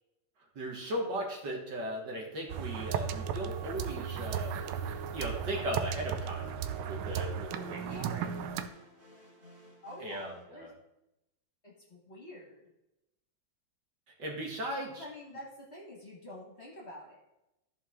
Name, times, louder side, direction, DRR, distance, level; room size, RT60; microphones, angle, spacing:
voice 1, 0.6-4.5 5.1-6.5 6.9-8.3 10.0-10.7 14.2-15.0, right 1 dB, 60° right, 0 dB, 1.9 m, -37 dB
sound 1, 2.5-8.7, right 8 dB, 85° right, 1.5 m, -35 dB
sound 2, 3.6-10.4, left 1 dB, 30° right, 2.7 m, -56 dB
voice 2, 7.8-8.2 9.8-10.7 11.6-12.6 15.0-17.2, left 1 dB, 35° left, -2 dB, 1.5 m, -47 dB
13.5 x 4.7 x 3.6 m, 0.93 s
omnidirectional pair, 2.3 m